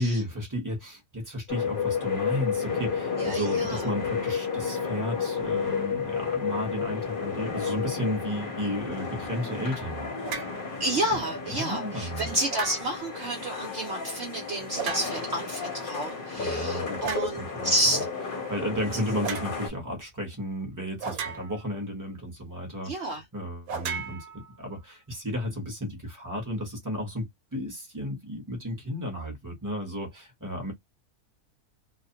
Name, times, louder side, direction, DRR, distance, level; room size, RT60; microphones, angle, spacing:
voice 1, 0.0-10.1 10.4-10.6 11.1-11.2 11.5-12.3 16.4-18.0 18.5-30.7, equal, 15° right, 0.8 m, -33 dB
sound 1, 1.5-19.7, left 5 dB, 45° left, 0.8 m, -32 dB
voice 2, 3.2-3.9 10.8-18.0 22.8-23.2, right 1 dB, 60° right, 0.9 m, -30 dB
sound 2, 10.2-10.6 12.5-13.1 14.7-15.4 17.0-17.4 19.2-19.5 21.0-21.8 23.7-24.8, right 6 dB, 85° right, 1.1 m, -35 dB
2.5 x 2.1 x 2.7 m
omnidirectional pair, 1.5 m